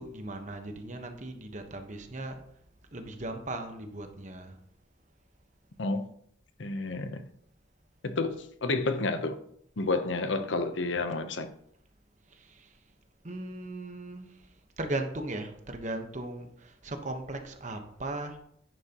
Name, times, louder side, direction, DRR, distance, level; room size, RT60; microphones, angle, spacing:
voice 1, 0.0-2.4 2.9-4.6 8.8-9.0 12.3-12.7 13.2-14.3 14.8-18.4, right 2 dB, 40° right, 1.1 m, -38 dB
voice 2, 5.8-6.1 6.6-7.2 8.0-9.4 9.8-11.5, left 3 dB, 80° left, 0.8 m, -30 dB
10.5 x 9.1 x 3.0 m
head